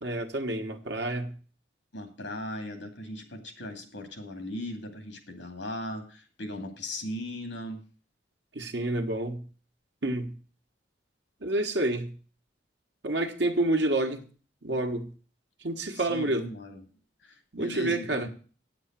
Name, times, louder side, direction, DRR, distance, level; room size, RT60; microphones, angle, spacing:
voice 1, 0.0-1.3 8.5-9.4 10.0-10.4 11.4-12.1 13.0-14.3 14.6-15.1 15.6-16.5 17.5-18.3, right 2 dB, 70° right, 1.3 m, -28 dB
voice 2, 1.9-7.8 15.9-16.8 17.2-18.3, left 1 dB, 75° left, 2.5 m, -38 dB
9.1 x 8.0 x 7.4 m
head